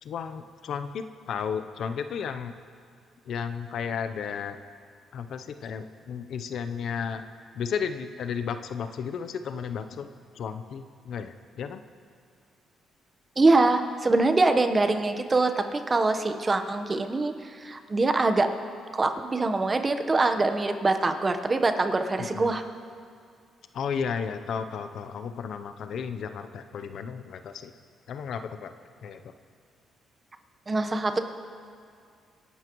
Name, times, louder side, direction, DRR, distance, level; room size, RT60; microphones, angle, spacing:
voice 1, 0.0-2.5 3.3-4.6 5.1-7.2 7.5-11.8 22.2-22.6 23.7-27.7 28.1-28.7 29.0-29.3, left 6 dB, 65° left, 9 dB, 0.7 m, -33 dB
voice 2, 13.4-18.5 18.9-22.6 30.7-31.2, right 3 dB, 30° right, 7 dB, 1.0 m, -24 dB
26.0 x 11.0 x 3.1 m, 2.2 s
cardioid pair, 90°, 0 cm